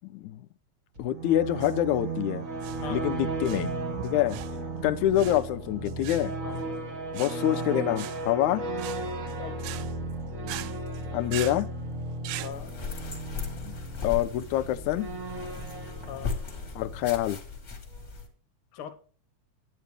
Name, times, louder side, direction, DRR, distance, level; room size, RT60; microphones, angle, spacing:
sound 1, 0.9-17.6, right 2 dB, 35° right, 1.6 m, -35 dB
voice 1, 1.0-2.4 2.9-3.7 4.0-4.4 4.8-6.3 7.1-8.6 11.1-11.7 13.6-13.7 14.0-15.1 16.8-17.4, left 13 dB, 85° left, 2.0 m, -26 dB
sound 2, 1.5-12.5, right 14 dB, 85° right, 2.0 m, -42 dB
voice 2, 6.4-6.8 9.4-9.7 12.4-12.8 16.1-16.4 18.7-18.9, left 9 dB, 60° left, 1.7 m, -41 dB
sound 3, 12.5-18.3, left 5 dB, 30° left, 1.5 m, -37 dB
11.0 x 9.1 x 3.3 m
omnidirectional pair, 3.3 m